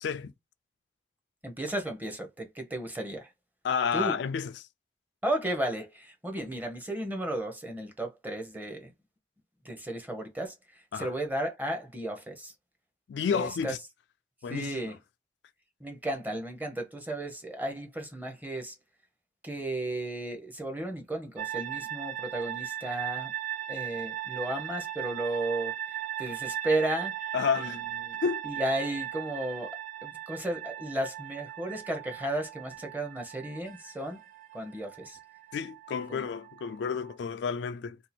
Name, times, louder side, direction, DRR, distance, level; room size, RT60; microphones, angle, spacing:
voice 1, 0.0-0.3 3.6-4.5 10.9-11.1 13.1-13.8 14.4-15.0 27.3-27.8 28.2-28.4 35.5-38.0, left 6 dB, 80° left, 0.3 m, -30 dB
voice 2, 1.4-3.3 3.9-4.2 5.2-8.9 9.6-12.5 13.3-13.8 14.5-15.0 15.8-18.8 19.4-23.3 23.7-27.8 28.0-28.2 28.4-34.2 34.5-35.2 36.1-36.3, right 1 dB, 10° right, 0.7 m, -34 dB
sound 1, 21.4-37.1, right 12 dB, 45° right, 0.6 m, -38 dB
2.7 x 2.4 x 4.1 m
head